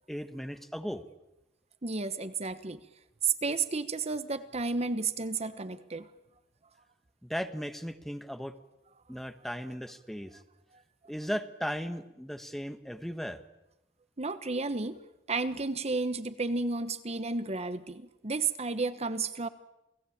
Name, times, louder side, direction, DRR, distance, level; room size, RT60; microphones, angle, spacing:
voice 1, 0.1-1.0 7.2-8.5 9.1-10.4 11.1-13.4, equal, ahead, 9 dB, 1.2 m, -36 dB
voice 2, 1.8-2.8 3.2-6.1 14.2-15.0 15.3-19.5, right 4 dB, 35° right, 12 dB, 1.1 m, -32 dB
29.0 x 18.0 x 8.7 m, 0.91 s
head